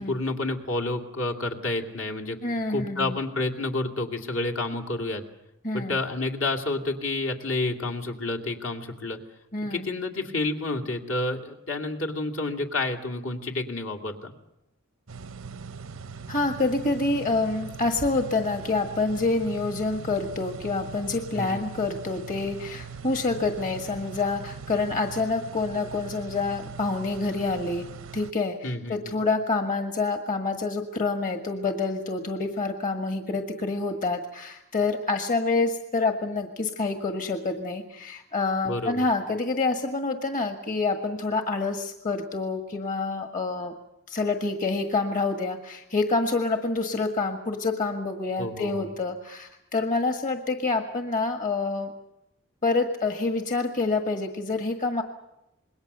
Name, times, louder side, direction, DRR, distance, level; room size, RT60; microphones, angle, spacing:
voice 1, 0.0-2.4 2.7-5.2 5.7-9.2 9.7-14.3 21.4-21.7 28.6-29.2 38.6-39.0 48.4-48.9, left 2 dB, 65° left, 3 dB, 2.6 m, -29 dB
voice 2, 2.4-3.2 5.6-6.0 9.5-9.9 16.3-27.9 28.1-43.7 44.1-51.9 52.6-55.0, left 3 dB, 40° left, 5 dB, 1.6 m, -27 dB
sound 1, 15.1-28.3, right 5 dB, 80° right, 0.8 m, -41 dB
27.0 x 21.5 x 6.8 m, 0.87 s
head